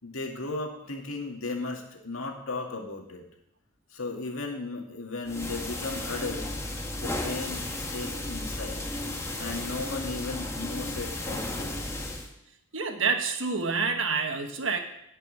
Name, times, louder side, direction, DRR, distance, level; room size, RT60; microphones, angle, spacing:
voice 1, 0.0-3.2 3.9-6.6 7.0-8.8 9.4-11.9, left 3 dB, 85° left, 2 dB, 2.1 m, -36 dB
sound 1, 5.3-12.3, left 1 dB, 15° left, 1.3 m, -34 dB
voice 2, 12.7-14.8, right 5 dB, 65° right, 5 dB, 1.4 m, -27 dB
12.0 x 5.5 x 8.5 m, 0.79 s
head